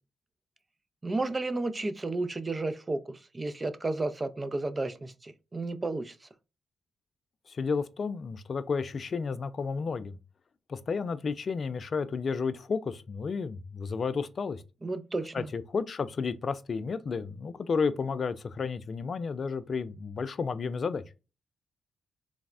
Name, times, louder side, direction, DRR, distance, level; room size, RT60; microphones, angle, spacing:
voice 1, 1.0-6.1 14.8-15.5, right 2 dB, 30° right, 0.5 m, -32 dB
voice 2, 7.5-10.2 10.7-14.6 15.3-21.0, left 5 dB, 55° left, 0.3 m, -32 dB
3.2 x 2.0 x 2.4 m
supercardioid pair, 50°, 0 cm